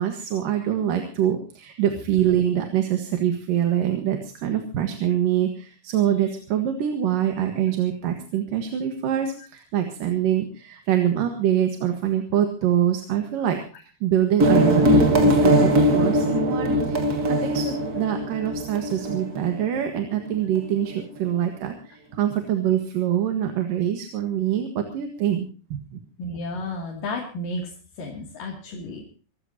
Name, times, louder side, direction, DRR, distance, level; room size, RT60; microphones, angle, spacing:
voice 1, 0.0-13.6 14.0-25.8, right 10 dB, 85° right, 6 dB, 3.3 m, -24 dB
sound 1, 14.4-19.8, equal, 30° right, 2.1 m, -20 dB
voice 2, 26.2-27.6 28.0-29.0, left 2 dB, 80° left, -1 dB, 4.5 m, -32 dB
26.0 x 14.0 x 2.9 m, 0.37 s
omnidirectional pair, 3.8 m